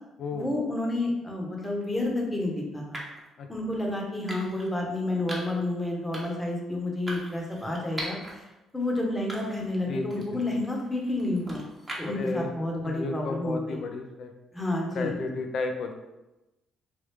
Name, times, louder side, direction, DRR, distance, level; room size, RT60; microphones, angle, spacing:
voice 1, 0.3-3.0 3.5-8.2 8.7-11.6 12.0-13.6 14.5-15.1, left 2 dB, 15° left, -1 dB, 0.9 m, -30 dB
sound 1, 1.6-1.9 2.9-3.3 4.3-4.7 5.3-5.6 6.1-6.5 7.1-8.3 8.8-8.9 9.3-9.8 10.1-12.3, right 1 dB, 25° right, 1.0 m, -40 dB
voice 2, 9.9-10.4 12.1-12.5 12.8-14.3 14.9-15.9, left 3 dB, 65° left, 4 dB, 0.4 m, -33 dB
3.3 x 2.3 x 3.2 m, 1.0 s
supercardioid pair, 65°, 0 cm